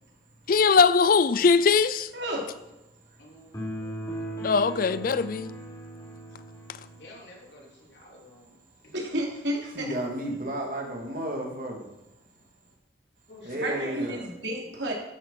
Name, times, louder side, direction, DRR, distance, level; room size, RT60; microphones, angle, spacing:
voice 1, 0.5-2.1 4.4-5.5, left 5 dB, 50° left, 0.4 m, -21 dB
voice 2, 2.1-2.5 8.9-10.0 13.6-14.9, right 1 dB, 80° right, 3.3 m, -31 dB
voice 3, 3.2-4.1 7.0-8.9 11.4-11.8 13.3-14.2, left 1 dB, 70° left, 3.4 m, -49 dB
sound 1, 3.5-7.1, right 1 dB, 20° left, 3.3 m, -37 dB
voice 4, 9.8-11.9 13.4-14.2, right 1 dB, 50° right, 2.8 m, -32 dB
12.0 x 7.8 x 5.9 m
head